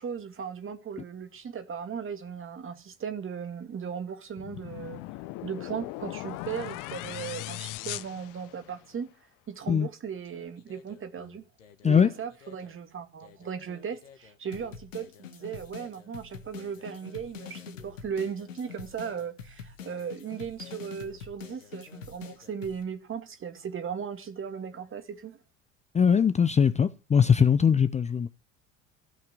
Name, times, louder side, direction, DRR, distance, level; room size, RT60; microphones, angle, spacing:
voice 1, 0.0-5.0 5.4-9.1 9.5-11.4 11.8-25.4, right 7 dB, 30° right, 2.1 m, -37 dB
sound 1, 4.4-9.0, left 17 dB, 55° left, 0.8 m, -39 dB
sound 2, 10.2-12.7 13.2-22.8, left 6 dB, 80° left, 1.4 m, -46 dB
voice 2, 25.9-28.3, left 7 dB, 20° left, 0.6 m, -21 dB
16.0 x 5.8 x 9.2 m
figure-of-eight pair, 65°, 38 cm